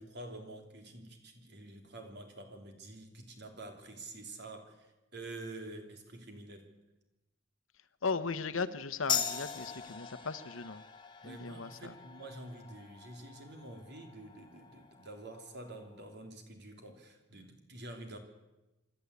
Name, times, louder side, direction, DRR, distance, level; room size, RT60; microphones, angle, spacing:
voice 1, 0.0-4.9 5.1-6.7 11.2-18.2, right 2 dB, 55° right, 5 dB, 3.4 m, -48 dB
voice 2, 8.0-10.8 11.2-11.9, left 4 dB, 80° left, 13 dB, 1.1 m, -37 dB
sound 1, 9.1-16.2, left 7 dB, 25° left, 1.8 m, -41 dB
26.0 x 13.0 x 8.5 m, 1.0 s
head